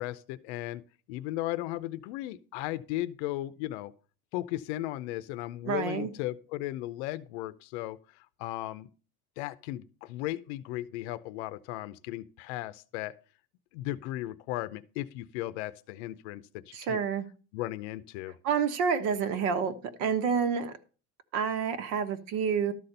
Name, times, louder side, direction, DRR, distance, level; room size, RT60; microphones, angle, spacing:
voice 1, 0.0-3.9 4.3-8.9 9.4-13.2 13.7-17.0 17.5-18.4, left 15 dB, 85° left, 0.7 m, -36 dB
voice 2, 5.6-6.1 16.7-17.3 18.4-19.7 20.0-20.7 21.3-22.7, right 6 dB, 65° right, 1.4 m, -28 dB
12.5 x 4.2 x 6.6 m
cardioid pair, 160°, 33 cm